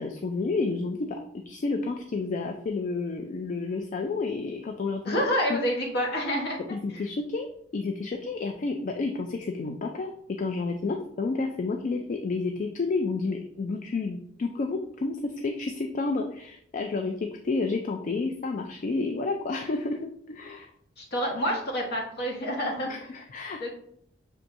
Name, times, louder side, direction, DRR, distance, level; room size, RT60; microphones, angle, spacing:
voice 1, 0.0-5.2 5.5-5.6 6.7-7.5 7.7-20.0 20.3-20.7 22.9-23.7, left 3 dB, 45° left, 4 dB, 0.4 m, -30 dB
voice 2, 5.0-6.6 6.9-7.0 21.0-23.1 23.6-23.7, equal, 60° left, 0 dB, 1.3 m, -28 dB
6.1 x 3.4 x 2.6 m, 0.68 s
head